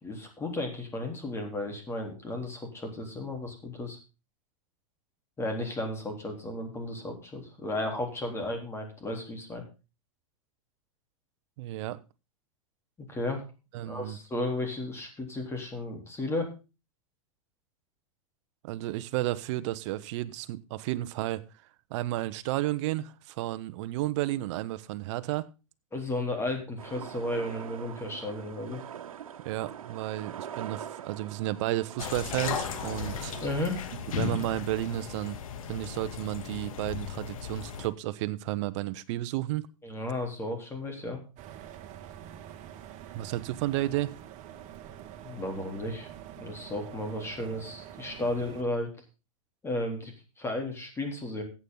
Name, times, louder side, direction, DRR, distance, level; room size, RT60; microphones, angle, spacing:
voice 1, 0.0-4.0 5.4-9.6 13.0-13.4 13.8-16.5 25.9-28.8 33.4-33.9 39.8-41.2 45.2-46.1 46.4-48.9 49.6-51.4, left 1 dB, 15° left, 3.7 m, -34 dB
voice 2, 11.6-12.0 13.7-14.2 18.6-21.4 21.9-25.5 29.4-33.4 34.1-35.4 35.7-39.7 43.1-44.1, right 16 dB, 60° right, 1.0 m, -32 dB
sound 1, 26.8-33.6, right 9 dB, 85° right, 1.4 m, -43 dB
sound 2, 32.0-37.9, left 7 dB, 80° left, 2.0 m, -36 dB
sound 3, 41.4-48.6, right 10 dB, 40° right, 1.8 m, -46 dB
14.5 x 8.7 x 3.9 m
hypercardioid pair, 130°, 17 cm